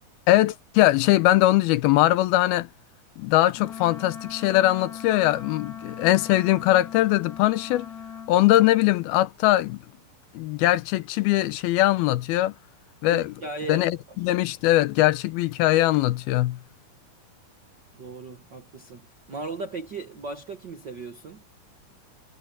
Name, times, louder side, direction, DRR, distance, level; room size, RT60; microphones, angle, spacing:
voice 1, 0.3-2.7 3.2-7.9 8.3-9.8 10.3-12.5 13.0-13.3 13.7-16.6, left 16 dB, 85° left, 2.7 m, -21 dB
Wind instrument woodwind instrument, 3.5-8.4, left 8 dB, 25° left, 2.9 m, -39 dB
voice 2, 13.0-14.2 17.9-21.4, right 3 dB, 60° right, 1.1 m, -37 dB
omnidirectional pair, 4.3 m